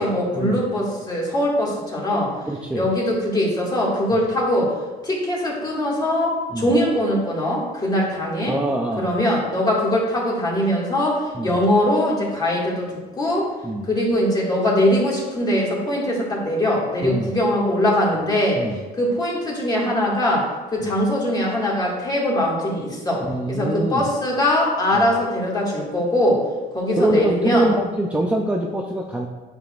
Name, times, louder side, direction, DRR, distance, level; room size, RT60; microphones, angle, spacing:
voice 1, 0.0-2.3 2.7-4.7 5.0-8.6 9.0-12.9 13.2-13.5 13.9-18.6 19.0-26.4 26.7-27.7, left 1 dB, 25° left, -4 dB, 2.1 m, -21 dB
voice 2, 2.5-2.9 4.1-4.2 6.5-6.7 8.5-9.1 11.3-11.6 13.6-13.9 17.0-17.3 18.6-18.8 20.8-20.9 23.3-24.0 24.9-25.1 27.0-29.3, right 1 dB, 10° right, 0 dB, 0.6 m, -24 dB
8.7 x 6.0 x 2.5 m, 1.3 s
cardioid pair, 110°, 17 cm